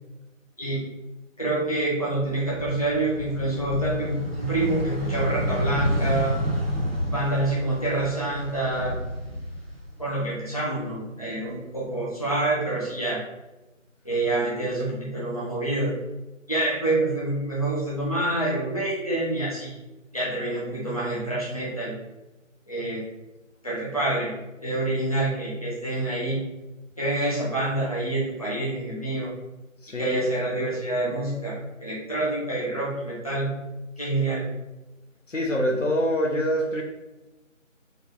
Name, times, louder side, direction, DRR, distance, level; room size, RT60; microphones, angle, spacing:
voice 1, 1.4-6.4 7.1-8.9 10.0-13.2 14.0-15.9 16.5-19.7 20.1-21.9 22.7-23.0 23.6-24.3 24.6-26.5 27.0-29.3 30.0-33.6 34.0-34.5, right 2 dB, 25° left, -8 dB, 0.9 m, -27 dB
sound 1, 2.2-10.3 10.6-11.8, equal, 50° right, 0.8 m, -29 dB
voice 2, 29.8-30.2 35.3-36.8, equal, 65° left, 0 dB, 0.8 m, -25 dB
4.0 x 2.4 x 3.7 m, 1.0 s
figure-of-eight pair, 165°, 40 cm